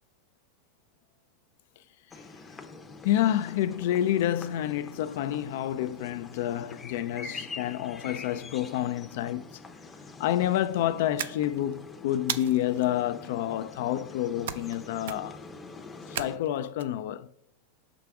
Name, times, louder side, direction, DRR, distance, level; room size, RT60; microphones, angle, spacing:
sound 1, 2.1-16.4, left 4 dB, 15° left, 0.6 m, -45 dB
voice 1, 3.0-9.4 10.2-15.4 16.1-17.3, left 12 dB, 70° left, 0.3 m, -28 dB
sound 2, 11.2-11.8 12.3-12.9 14.5-14.8 15.0-15.5 16.2-16.8, right 10 dB, 80° right, 0.4 m, -35 dB
5.8 x 4.8 x 3.5 m
supercardioid pair, 130°, 0 cm